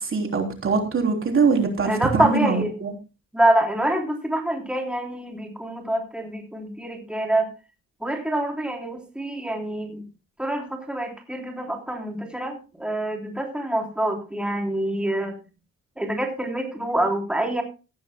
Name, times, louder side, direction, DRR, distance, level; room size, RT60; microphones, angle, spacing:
voice 1, 0.0-2.9, right 4 dB, 45° right, 2 dB, 3.6 m, -23 dB
voice 2, 1.8-2.9 3.3-7.5 8.0-10.0 10.4-15.4 16.0-17.6, right 1 dB, 5° right, 1 dB, 3.3 m, -26 dB
16.0 x 14.0 x 2.2 m, 0.31 s
cardioid pair, 90°, 30 cm